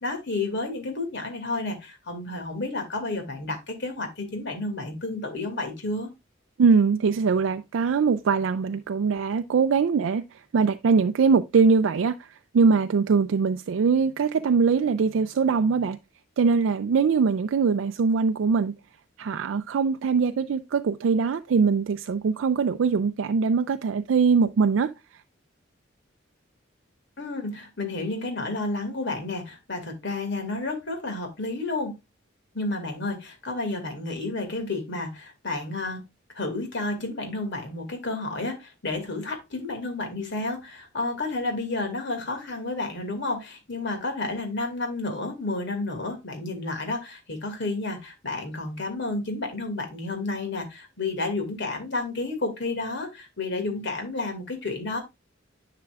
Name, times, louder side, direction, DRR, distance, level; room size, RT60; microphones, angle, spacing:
voice 1, 0.0-6.1 27.2-31.9 32.5-36.0 36.3-55.0, left 2 dB, 65° left, 2.3 m, -31 dB
voice 2, 6.6-16.0 16.4-18.7 19.2-24.9, right 5 dB, 80° right, 0.4 m, -22 dB
10.5 x 5.8 x 2.4 m
head